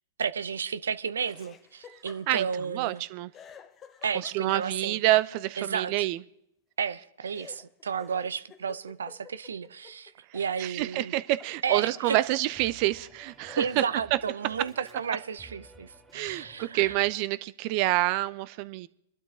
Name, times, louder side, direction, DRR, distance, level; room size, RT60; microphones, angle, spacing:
voice 1, 0.2-3.0 4.0-5.0 5.6-6.1 6.8-11.1 11.6-12.2 13.6-17.0, right 6 dB, 85° right, 0.7 m, -32 dB
Laughter, 1.2-3.0 3.3-5.0 7.3-10.5 10.8-12.5 13.1-13.2 13.5-14.8, left 7 dB, 25° left, 1.2 m, -52 dB
voice 2, 2.3-3.3 4.1-6.2 10.6-13.8 14.1-14.2 14.6-14.7 16.1-18.9, right 16 dB, 45° right, 0.7 m, -27 dB
sound 1, 12.0-17.2, right 2 dB, 10° right, 3.4 m, -54 dB
23.5 x 12.0 x 3.7 m
hypercardioid pair, 120°, 0 cm